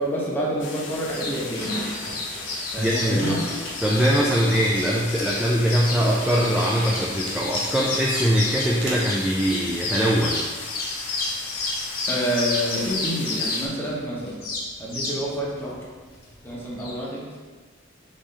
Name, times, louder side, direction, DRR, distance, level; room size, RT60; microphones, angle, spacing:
voice 1, 0.0-1.9 2.7-3.4 12.1-14.4 14.8-15.8 16.4-17.3, equal, 10° left, -5 dB, 0.9 m, -28 dB
sound 1, 0.6-13.7, left 3 dB, 70° left, 0.7 m, -37 dB
sound 2, 0.9-16.9, left 2 dB, 50° left, 1.1 m, -31 dB
voice 2, 2.8-3.5 3.8-10.4, equal, 5° right, -5 dB, 0.3 m, -22 dB
sound 3, 6.1-8.1 8.8-9.1, right 2 dB, 55° right, 0.8 m, -36 dB
4.0 x 3.1 x 3.7 m, 1.4 s
head